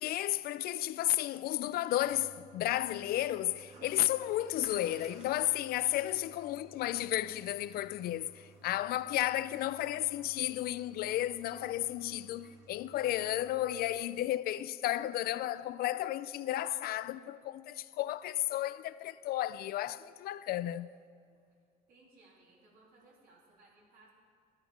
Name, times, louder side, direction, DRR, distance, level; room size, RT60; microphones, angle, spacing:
voice 1, 0.0-20.9, left 14 dB, 65° left, 0.4 m, -33 dB
Toilet flush, 2.0-14.0, right 3 dB, 40° right, 2.1 m, -57 dB
voice 2, 21.1-21.4 21.9-24.1, right 2 dB, 60° right, 3.3 m, -63 dB
12.5 x 10.5 x 5.0 m
cardioid pair, 110°, 17 cm